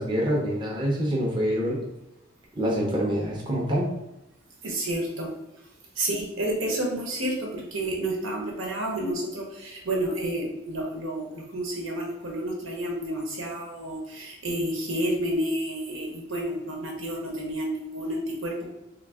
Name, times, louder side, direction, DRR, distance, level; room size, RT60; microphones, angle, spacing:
voice 1, 0.0-1.8 2.6-3.9, equal, 25° right, -4 dB, 0.8 m, -26 dB
voice 2, 4.6-5.3 6.0-18.7, right 1 dB, 80° right, -1 dB, 1.2 m, -30 dB
3.8 x 2.8 x 3.5 m, 0.93 s
head